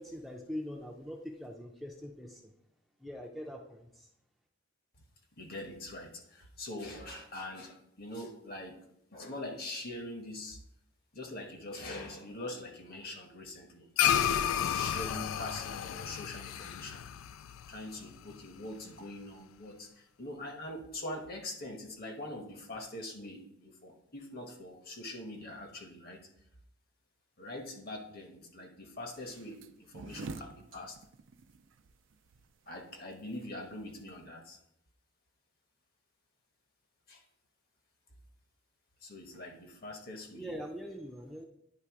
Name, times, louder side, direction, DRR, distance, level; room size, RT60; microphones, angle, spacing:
voice 1, 0.0-2.5 3.0-4.1 40.3-41.5, equal, ahead, 1 dB, 0.5 m, -42 dB
voice 2, 5.4-8.8 9.1-10.6 11.1-14.1 14.7-17.1 17.7-26.3 27.4-31.0 32.7-34.6 37.1-37.2 39.0-40.5, left 1 dB, 50° left, 3 dB, 1.2 m, -43 dB
sound 1, 14.0-18.6, left 9 dB, 90° left, 0.3 m, -32 dB
sound 2, 29.1-34.3, right 3 dB, 70° right, 0.4 m, -48 dB
9.7 x 3.3 x 4.7 m, 0.75 s
head